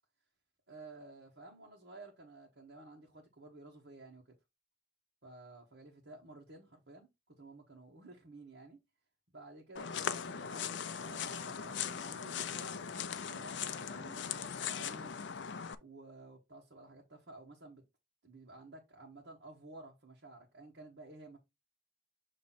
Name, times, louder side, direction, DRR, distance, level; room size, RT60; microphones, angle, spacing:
voice 1, 0.7-4.3 5.2-8.8 9.3-15.1 15.8-17.8 18.2-21.4, right 2 dB, 60° right, 1.4 m, -53 dB
sound 1, 9.8-15.8, left 7 dB, 60° left, 0.6 m, -39 dB
7.4 x 3.0 x 4.2 m
head